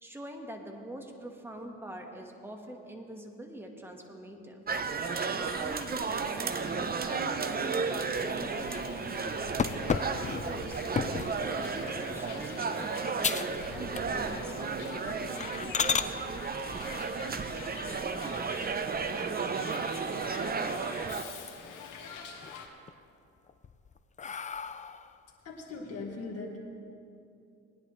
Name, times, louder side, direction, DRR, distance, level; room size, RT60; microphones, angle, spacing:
voice 1, 0.0-4.6 5.2-15.8, right 1 dB, 10° right, 2 dB, 1.5 m, -45 dB
sound 1, 4.7-21.2, right 5 dB, 30° right, 0.7 m, -33 dB
Hiss, 5.0-22.7, left 5 dB, 90° left, 1.4 m, -46 dB
sound 2, 9.6-11.4 12.0-12.3 12.7-12.8 13.2-13.6 13.9-14.4 14.8-14.9 15.4-16.1 18.1-18.8 19.3-19.4 19.8-19.9 20.1-20.9 21.3-21.9 22.3-22.9 23.5-25.2, left 6 dB, 25° left, 0.4 m, -33 dB
voice 2, 25.4-26.6, left 3 dB, 55° left, -1 dB, 1.9 m, -39 dB
19.5 x 10.5 x 3.2 m, 2.6 s
cardioid pair, 90°, 30 cm